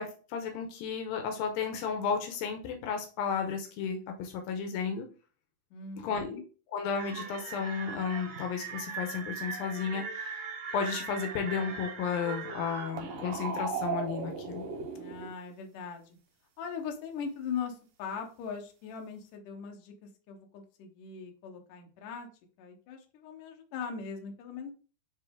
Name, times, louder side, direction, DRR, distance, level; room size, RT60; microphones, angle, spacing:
voice 1, 0.0-5.1 6.0-6.4 6.7-10.5 10.7-14.6, left 6 dB, 85° left, 4 dB, 2.6 m, -33 dB
voice 2, 5.7-6.4 14.9-16.2 16.6-22.3 22.6-24.7, left 6 dB, 70° left, 3 dB, 2.5 m, -40 dB
sound 1, 6.9-15.3, right 5 dB, 65° right, 1.9 m, -38 dB
10.0 x 3.4 x 3.6 m, 0.38 s
omnidirectional pair, 4.2 m